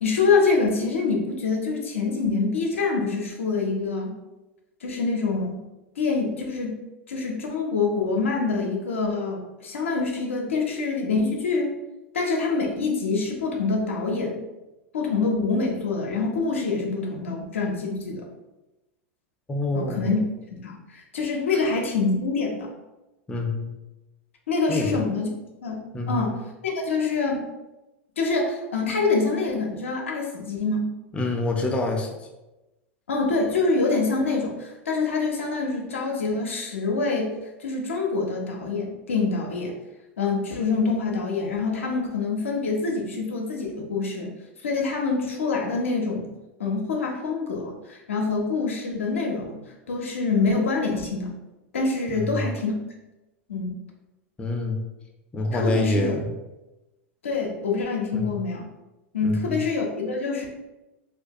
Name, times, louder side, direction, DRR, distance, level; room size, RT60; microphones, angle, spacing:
voice 1, 0.0-4.1 4.8-5.6 6.0-6.8 7.1-11.8 12.1-14.4 14.9-18.3 19.7-20.2 20.6-22.7 24.5-25.3 25.6-25.8 26.1-27.4 28.2-30.9 33.1-37.3 37.6-39.8 40.2-44.3 44.6-46.3 46.6-51.3 51.7-52.7 53.5-53.8 55.5-56.1 57.2-58.7 59.1-60.5, left 4 dB, 90° left, 0 dB, 0.5 m, -25 dB
voice 2, 19.5-20.1 21.5-21.6 23.3-23.7 24.7-25.0 25.9-26.3 31.1-32.1 52.1-52.5 54.4-54.8 55.3-56.3 58.1-58.4 59.2-59.6, left 2 dB, 15° left, 1 dB, 0.4 m, -26 dB
2.4 x 2.2 x 2.6 m, 1.0 s
hypercardioid pair, 100°, 7 cm